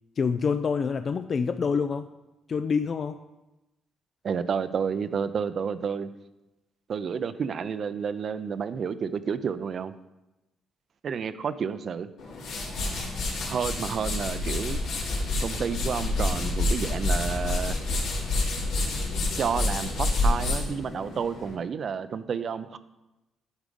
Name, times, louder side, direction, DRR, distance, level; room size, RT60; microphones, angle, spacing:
voice 1, 0.2-2.1 2.5-3.2, left 5 dB, 40° left, 9 dB, 0.3 m, -26 dB
voice 2, 4.2-6.1 6.9-9.9 11.0-12.1 13.5-14.8 15.4-17.8 19.4-22.8, right 6 dB, 45° right, 13 dB, 0.5 m, -30 dB
sound 1, 12.2-21.5, left 2 dB, 85° left, 2.8 m, -28 dB
11.5 x 4.8 x 5.3 m, 1.0 s
cardioid pair, 120°, 0 cm